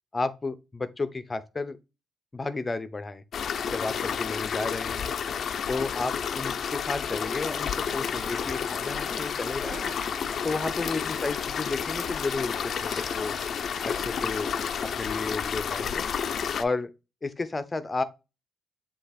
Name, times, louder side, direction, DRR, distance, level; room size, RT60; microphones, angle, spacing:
voice 1, 0.1-1.8 2.3-3.2 3.7-5.1 5.7-9.9 10.4-13.4 13.8-14.5 14.8-16.1 16.6-16.9 17.2-18.0, left 3 dB, 25° left, 0.8 m, -32 dB
sound 1, 3.3-16.6, left 7 dB, 55° left, 0.6 m, -31 dB
sound 2, 7.2-14.9, right 4 dB, 65° right, 1.5 m, -47 dB
7.6 x 3.0 x 4.2 m
cardioid pair, 90°, 0 cm